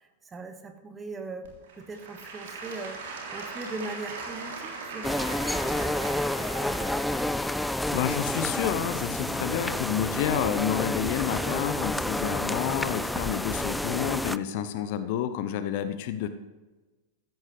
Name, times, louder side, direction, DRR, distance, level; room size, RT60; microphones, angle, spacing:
voice 1, 0.0-1.5 1.7-7.3 15.0-15.1, right 3 dB, 15° right, 7 dB, 1.5 m, -40 dB
Applause / Crowd, 1.4-10.3 10.9-11.0, right 4 dB, 55° right, 3.2 m, -41 dB
sound 1, 5.0-14.4, left 1 dB, 5° left, 0.4 m, -29 dB
voice 2, 7.6-16.3, left 10 dB, 50° left, 11 dB, 0.8 m, -29 dB
15.5 x 13.5 x 3.3 m, 1.2 s
figure-of-eight pair, 90°, 0 cm